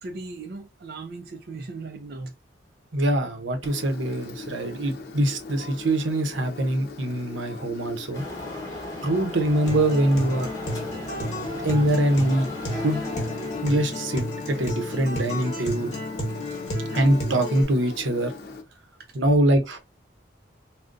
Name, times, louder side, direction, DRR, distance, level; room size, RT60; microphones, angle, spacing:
voice 1, 0.0-2.3 19.1-19.2, right 3 dB, 55° right, 0.4 m, -37 dB
voice 2, 2.9-8.2 9.0-10.5 11.6-12.5 12.8-13.0 13.6-15.9 16.9-18.3 19.1-19.8, right 1 dB, 85° right, 0.8 m, -23 dB
Engine, 3.6-18.6, left 3 dB, 55° left, 0.6 m, -41 dB
sound 1, 8.1-13.9, left 1 dB, 20° left, 1.0 m, -38 dB
Acoustic guitar, 9.6-17.6, left 1 dB, 40° left, 1.1 m, -32 dB
3.7 x 2.1 x 2.5 m
head